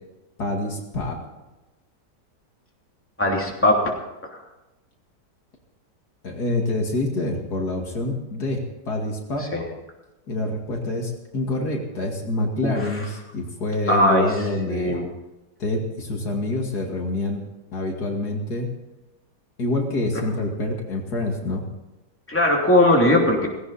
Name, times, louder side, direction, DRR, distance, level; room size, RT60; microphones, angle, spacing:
voice 1, 0.4-1.2 6.2-9.5 10.3-15.0 15.6-17.4 17.7-18.7 19.6-21.6, left 2 dB, 70° left, 1 dB, 2.8 m, -26 dB
voice 2, 3.2-3.9 4.3-4.4 9.4-9.6 12.6-12.9 13.9-14.3 14.7-15.0 22.3-23.5, left 1 dB, 5° left, -1 dB, 3.1 m, -19 dB
17.5 x 17.0 x 4.3 m, 1.0 s
omnidirectional pair, 1.8 m